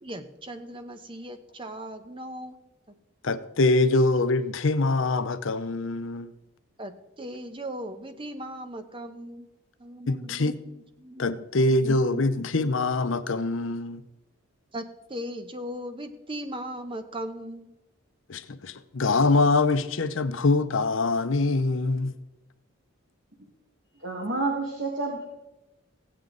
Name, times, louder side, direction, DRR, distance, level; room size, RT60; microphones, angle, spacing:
voice 1, 0.0-2.6 6.8-9.5 9.8-12.2 14.7-17.7, equal, 25° right, 0.9 m, -38 dB
voice 2, 3.2-6.3 10.1-10.5 11.2-14.0 18.3-22.2, left 2 dB, 70° left, 0.7 m, -24 dB
voice 3, 23.9-25.2, right 3 dB, 60° right, 1.9 m, -29 dB
16.0 x 9.0 x 3.9 m
head